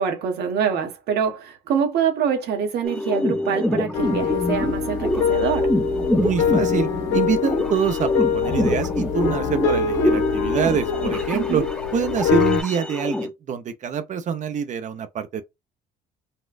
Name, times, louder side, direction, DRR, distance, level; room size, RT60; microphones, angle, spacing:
voice 1, 0.0-5.7 11.3-11.6, right 7 dB, 75° right, 1.3 m, -25 dB
sound 1, 2.8-13.3, left 1 dB, 5° left, 0.5 m, -26 dB
sound 2, 3.9-12.6, left 6 dB, 90° left, 1.4 m, -24 dB
voice 2, 6.2-11.6 11.9-15.4, right 7 dB, 45° right, 0.7 m, -25 dB
4.2 x 2.3 x 2.4 m
cardioid pair, 110°, 17 cm